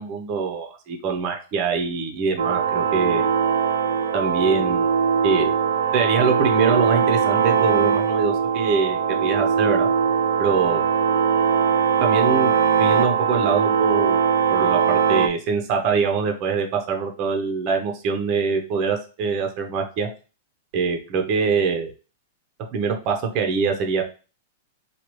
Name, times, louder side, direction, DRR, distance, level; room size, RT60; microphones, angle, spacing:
voice 1, 0.0-3.2 4.1-4.9 5.2-5.6 5.9-9.9 10.4-10.9 12.0-12.5 12.8-14.2 14.5-20.1 20.7-21.9 22.7-24.0, right 5 dB, 30° right, 4 dB, 0.7 m, -24 dB
sound 1, 2.4-15.3, right 7 dB, 90° right, 0.4 m, -20 dB
4.7 x 2.3 x 3.0 m, 0.33 s
supercardioid pair, 170°, 0 cm